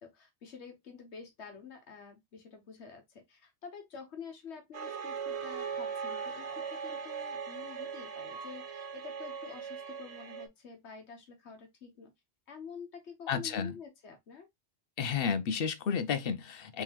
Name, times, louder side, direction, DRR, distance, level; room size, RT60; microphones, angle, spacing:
voice 1, 0.0-12.1 12.5-14.5, left 6 dB, 85° left, 1.3 m, -48 dB
sound 1, 4.7-10.5, right 6 dB, 75° right, 0.9 m, -39 dB
Percussion / Church bell, 5.6-9.4, left 1 dB, 35° left, 1.8 m, -54 dB
voice 2, 13.3-13.7 15.0-16.8, left 6 dB, 65° left, 0.8 m, -32 dB
3.8 x 3.3 x 2.9 m
omnidirectional pair, 1.1 m